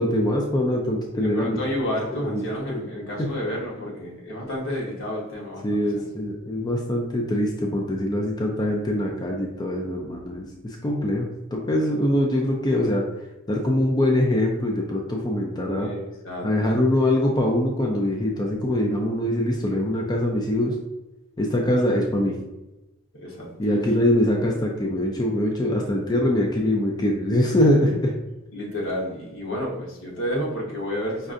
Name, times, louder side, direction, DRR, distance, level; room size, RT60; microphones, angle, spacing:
voice 1, 0.0-1.6 2.1-2.4 2.7-2.8 5.6-13.0 13.5-15.9 16.4-20.7 21.4-22.4 23.6-28.1, left 1 dB, 20° left, 0 dB, 0.4 m, -23 dB
voice 2, 1.1-6.0 15.8-16.5 23.1-23.5 27.5-27.9 28.5-31.3, equal, 70° left, -3 dB, 1.1 m, -30 dB
5.3 x 2.5 x 2.5 m, 1.0 s
head